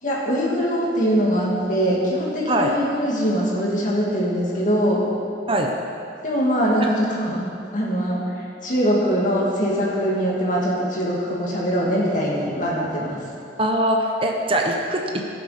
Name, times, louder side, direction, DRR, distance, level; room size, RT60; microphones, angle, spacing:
voice 1, 0.0-5.0 6.2-7.4 7.7-13.2, equal, 45° left, -4 dB, 2.4 m, -22 dB
voice 2, 13.6-15.2, right 1 dB, 30° right, 1 dB, 0.9 m, -22 dB
15.5 x 6.8 x 5.1 m, 2.5 s
head